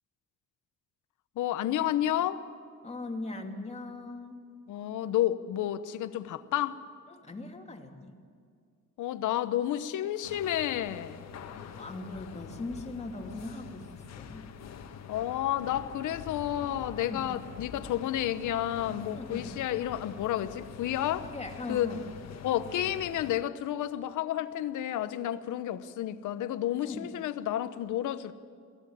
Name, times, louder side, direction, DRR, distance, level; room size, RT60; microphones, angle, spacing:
voice 1, 1.4-2.4 4.7-6.8 9.0-11.2 15.1-21.3 21.7-21.9 22.4-28.3, left 12 dB, 80° left, 12 dB, 1.1 m, -31 dB
voice 2, 2.8-4.4 7.1-8.2 11.8-14.5 17.1-17.3 19.1-19.6 21.3-22.0 26.8-27.1, left 2 dB, 20° left, 2 dB, 2.7 m, -40 dB
sound 1, 10.2-23.4, left 7 dB, 60° left, 1.7 m, -45 dB
22.5 x 16.5 x 8.7 m, 2.2 s
cardioid pair, 90°, 30 cm